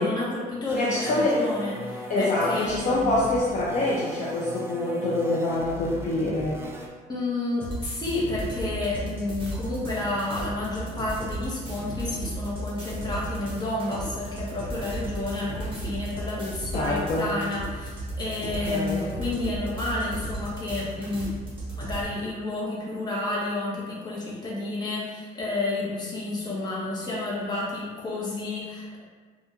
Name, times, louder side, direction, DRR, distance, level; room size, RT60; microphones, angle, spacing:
voice 1, 0.0-3.2 7.1-21.3 21.8-29.0, left 2 dB, 25° left, -5 dB, 1.0 m, -30 dB
voice 2, 0.7-1.4 2.1-6.6 16.7-17.2 18.4-19.0, left 2 dB, 45° left, -6 dB, 0.5 m, -25 dB
sound 1, 0.7-6.9, equal, 15° right, 0.4 m, -38 dB
sound 2, 7.6-22.0, right 1 dB, 30° right, 1.1 m, -35 dB
3.4 x 2.4 x 2.8 m, 1.5 s
cardioid pair, 110°, 17 cm